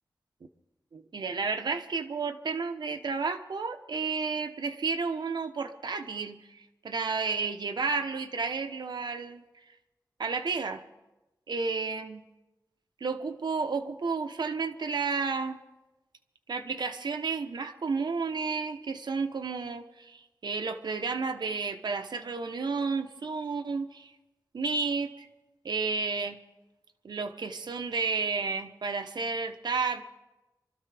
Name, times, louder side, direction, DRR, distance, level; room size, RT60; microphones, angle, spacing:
voice 1, 0.9-9.4 10.2-10.8 11.5-12.2 13.0-15.6 16.5-24.1 24.5-25.3 25.6-26.4 27.0-30.0, right 4 dB, 80° right, 7 dB, 0.9 m, -32 dB
24.5 x 13.0 x 3.4 m, 1.0 s
wide cardioid pair, 105°, 7 cm